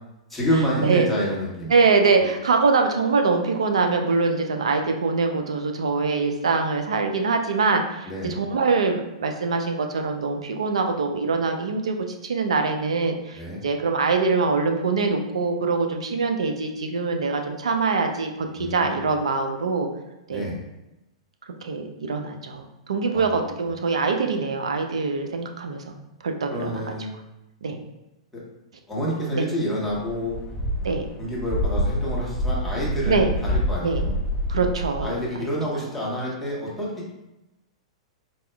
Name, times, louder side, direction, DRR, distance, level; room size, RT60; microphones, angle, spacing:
voice 1, 0.3-1.7 8.0-8.3 13.3-13.6 18.6-19.1 20.3-20.6 23.1-23.6 26.5-27.1 28.3-28.4 28.9-30.4 31.2-34.2 35.0-37.1, equal, 5° left, -7 dB, 1.0 m, -28 dB
voice 2, 1.7-12.0 12.2-19.9 20.3-20.5 21.6-25.8 26.2-26.7 27.6-27.8 29.3-29.4 30.8-31.1 33.0-33.3 33.8-34.0 34.5-35.5, right 4 dB, 70° right, 4 dB, 0.4 m, -23 dB
sound 1, 29.9-35.1, equal, 25° left, 0.4 m, -27 dB
4.1 x 2.3 x 2.3 m, 0.95 s
figure-of-eight pair, 105°, 3 cm